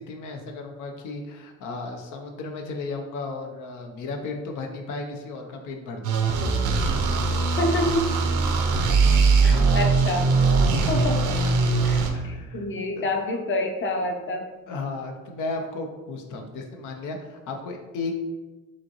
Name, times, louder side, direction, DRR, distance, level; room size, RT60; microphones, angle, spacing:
voice 1, 0.0-6.4 9.5-9.8 10.6-10.9 11.6-12.7 12.9-13.4 14.7-18.2, left 3 dB, 80° left, 3 dB, 0.6 m, -35 dB
sound 1, 6.0-12.1, right 4 dB, 85° right, 0.6 m, -21 dB
voice 2, 7.6-8.1 9.4-10.3 10.9-11.3 11.8-14.4, left 1 dB, 40° left, 4 dB, 0.7 m, -27 dB
5.0 x 2.9 x 2.9 m, 1.2 s
cardioid pair, 90°, 30 cm